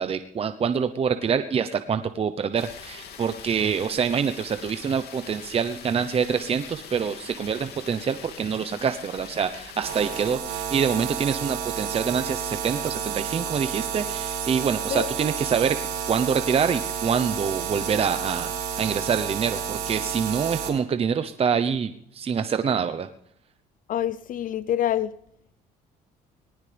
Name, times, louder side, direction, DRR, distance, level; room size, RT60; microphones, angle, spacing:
voice 1, 0.0-15.8 16.1-23.1, right 6 dB, 35° right, 10 dB, 0.9 m, -26 dB
sound 1, 2.6-10.3, left 8 dB, 70° left, 2.6 m, -43 dB
sound 2, 9.8-20.7, right 8 dB, 80° right, 4.8 m, -31 dB
voice 2, 23.9-25.1, left 11 dB, 55° left, 17 dB, 0.6 m, -26 dB
19.5 x 18.5 x 3.5 m, 0.72 s
cardioid pair, 110°, 17 cm